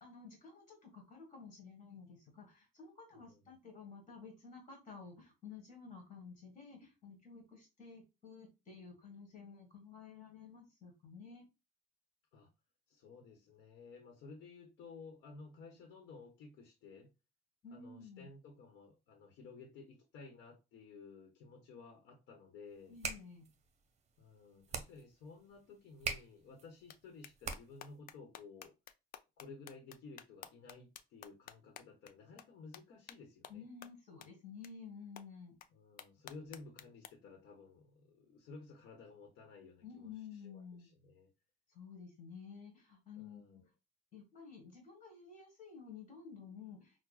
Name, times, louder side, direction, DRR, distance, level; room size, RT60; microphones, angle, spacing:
voice 1, 0.0-11.5 17.6-18.3 22.9-23.5 33.5-35.6 39.8-40.9 41.7-43.6 44.1-47.0, left 5 dB, 40° left, 1.5 m, -52 dB
voice 2, 3.1-3.5 12.3-12.5 12.9-17.1 17.7-23.0 24.2-28.7 29.4-33.6 35.7-40.1 40.4-41.3 43.1-43.6, left 4 dB, 80° left, 0.9 m, -55 dB
sound 1, 22.7-28.0, right 5 dB, 40° right, 0.7 m, -45 dB
sound 2, 26.9-27.0 27.2-32.1 32.4-32.5 32.7-32.8 33.1-33.2 33.4-33.5 33.8-33.9 34.2-34.3 34.6-34.7 35.2-35.3 35.6-35.7 36.0-37.1, left 10 dB, 60° left, 0.4 m, -52 dB
6.0 x 2.1 x 2.3 m
cardioid pair, 110°, 17 cm